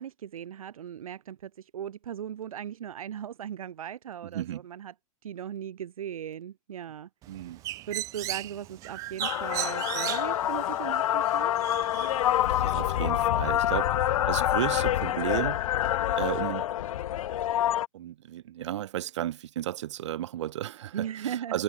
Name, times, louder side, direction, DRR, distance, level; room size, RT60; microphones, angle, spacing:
voice 1, 0.0-4.9 5.2-7.1 7.9-11.5 20.9-21.6, right 9 dB, 85° right, 2.1 m, -38 dB
voice 2, 4.2-4.6 7.3-7.6 12.5-13.9 14.3-15.6 16.2-16.7 17.9-21.6, right 12 dB, 55° right, 4.0 m, -33 dB
Bird, 7.2-12.7, right 16 dB, 20° right, 1.0 m, -37 dB
sound 1, 9.2-17.9, left 12 dB, 80° left, 0.5 m, -27 dB
supercardioid pair, 170°, 18 cm